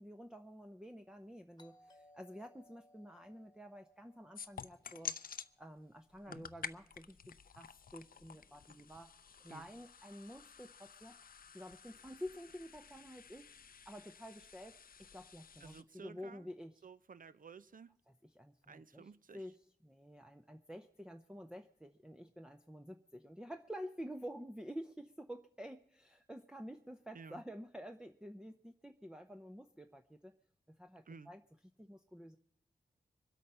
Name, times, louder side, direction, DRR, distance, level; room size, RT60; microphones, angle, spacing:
voice 1, 0.0-5.2 5.6-11.2 11.5-13.5 13.9-16.7 18.4-19.1 19.3-19.6 19.8-30.4 30.7-31.4 31.8-32.4, equal, 5° right, 4 dB, 0.7 m, -50 dB
Doorbell, 1.6-6.2, left 1 dB, 25° left, 1.3 m, -66 dB
sound 1, 1.7-1.8 4.3-5.4 7.9-9.7 11.9-15.3 15.9-16.2, equal, 20° right, 3.3 m, -79 dB
sound 2, 4.3-5.5 6.1-15.8, left 6 dB, 55° left, 0.5 m, -50 dB
voice 2, 15.6-16.5 16.8-18.0 18.7-19.5 27.1-27.4 31.1-31.3, right 5 dB, 55° right, 15 dB, 0.6 m, -54 dB
23.5 x 8.3 x 5.5 m, 0.67 s
wide cardioid pair, 75°, 17 cm